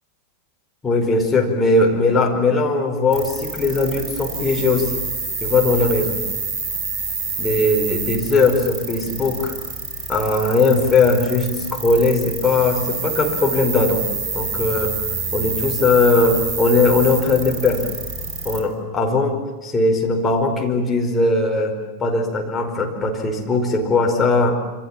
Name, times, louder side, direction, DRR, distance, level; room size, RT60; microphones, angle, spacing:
voice 1, 0.8-5.0 5.4-6.2 7.4-9.6 10.1-14.0 14.3-14.9 15.3-17.9 18.4-24.6, left 3 dB, 15° left, 2 dB, 5.0 m, -19 dB
sound 1, 3.1-18.6, right 4 dB, 25° right, 6.1 m, -28 dB
27.0 x 26.5 x 7.4 m, 1.3 s
figure-of-eight pair, 90°, 0 cm